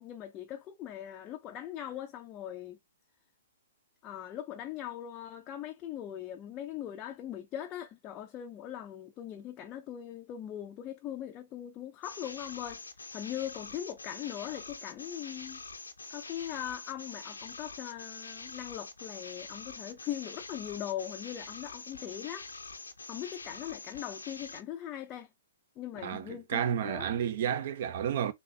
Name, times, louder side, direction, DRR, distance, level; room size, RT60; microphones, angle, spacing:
voice 1, 0.0-2.8 4.0-12.8 13.1-15.6 16.1-22.5 23.1-25.3 25.8-27.1, left 11 dB, 25° left, 0.5 m, -40 dB
sound 1, 12.0-24.6, left 3 dB, 80° left, 0.6 m, -45 dB
voice 2, 26.0-28.3, right 9 dB, 50° right, 0.7 m, -31 dB
4.0 x 2.7 x 3.2 m
figure-of-eight pair, 120°, 0 cm